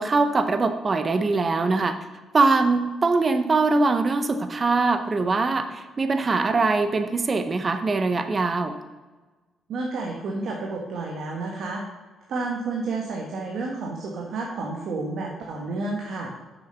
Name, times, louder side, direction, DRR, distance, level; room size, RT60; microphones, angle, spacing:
voice 1, 0.0-2.0 2.3-8.8, right 3 dB, 35° right, 8 dB, 0.7 m, -22 dB
voice 2, 9.7-11.8 12.3-16.3, right 3 dB, 70° right, -1 dB, 1.3 m, -30 dB
6.9 x 6.4 x 5.6 m, 1.3 s
cardioid pair, 90°, 0 cm